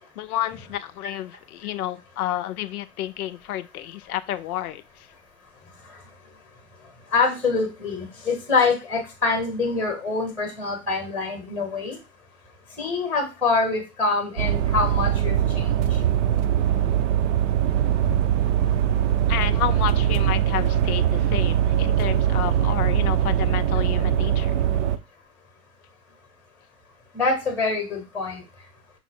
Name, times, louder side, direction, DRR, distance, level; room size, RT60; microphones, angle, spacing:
voice 1, 0.2-4.8 19.3-24.6, left 13 dB, 70° left, 12 dB, 0.6 m, -30 dB
voice 2, 7.1-12.0 12.8-15.8 27.1-28.4, left 4 dB, 5° left, 4 dB, 0.9 m, -25 dB
sound 1, 14.4-25.0, right 10 dB, 50° right, 0.5 m, -22 dB
5.5 x 2.0 x 4.3 m, 0.27 s
hypercardioid pair, 130°, 46 cm